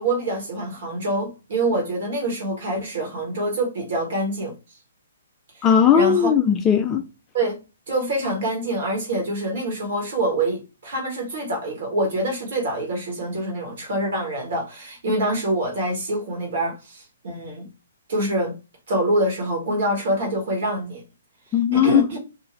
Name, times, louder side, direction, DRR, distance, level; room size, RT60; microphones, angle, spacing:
voice 1, 0.0-4.5 5.9-6.3 7.3-7.6 7.9-17.7 18.1-18.5 18.9-21.0 21.7-22.2, right 1 dB, 50° right, 1.4 m, -25 dB
voice 2, 5.6-7.0 21.5-22.2, left 8 dB, 20° left, 0.3 m, -18 dB
2.7 x 2.4 x 2.9 m
figure-of-eight pair, 125°, 0 cm